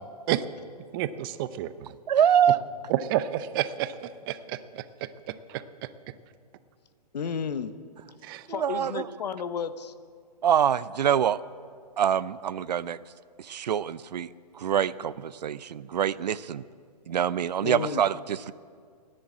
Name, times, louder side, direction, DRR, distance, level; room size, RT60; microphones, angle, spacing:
voice 1, 0.9-1.9 2.9-5.6 8.2-8.4, right 13 dB, 35° right, 13 dB, 0.7 m, -30 dB
voice 2, 2.1-2.6 8.5-9.1 10.4-11.4 12.0-13.0 13.4-14.3 14.5-16.6 17.1-18.5, right 9 dB, 80° right, 18 dB, 0.6 m, -25 dB
voice 3, 7.1-7.7 8.5-9.9 17.6-18.0, left 6 dB, 75° left, 12 dB, 1.1 m, -32 dB
15.5 x 10.0 x 8.7 m, 2.1 s
hypercardioid pair, 140°, 21 cm